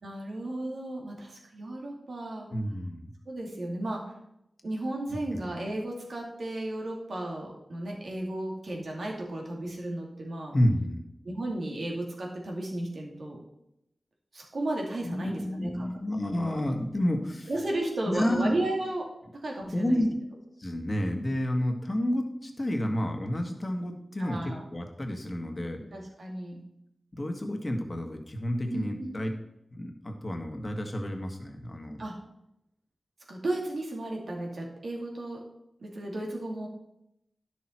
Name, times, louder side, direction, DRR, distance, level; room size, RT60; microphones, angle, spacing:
voice 1, 0.0-2.5 3.3-4.1 4.6-10.5 11.2-13.4 14.3-15.9 16.3-16.6 17.5-20.0 24.2-24.6 25.9-26.6 28.7-29.1 32.0-32.2 33.3-35.4 35.8-36.7, right 1 dB, 70° right, 0 dB, 2.4 m, -34 dB
voice 2, 2.5-3.1 5.1-5.4 10.5-11.0 15.0-17.5 18.1-18.5 19.7-20.1 20.6-25.8 27.1-29.3 29.7-32.0, left 1 dB, 35° left, 3 dB, 1.7 m, -30 dB
11.0 x 6.2 x 4.5 m, 0.82 s
cardioid pair, 55°, 0 cm